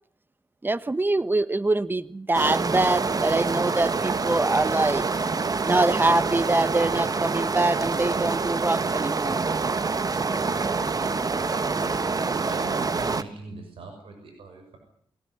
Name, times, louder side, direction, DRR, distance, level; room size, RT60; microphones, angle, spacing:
voice 1, 0.6-5.0 5.6-9.4, right 2 dB, 20° right, 15 dB, 1.2 m, -24 dB
sound 1, 2.3-13.2, right 4 dB, 40° right, 1.4 m, -26 dB
voice 2, 11.0-14.8, right 3 dB, 80° right, 4 dB, 6.7 m, -42 dB
23.0 x 17.5 x 10.0 m, 0.65 s
cardioid pair, 65°, 9 cm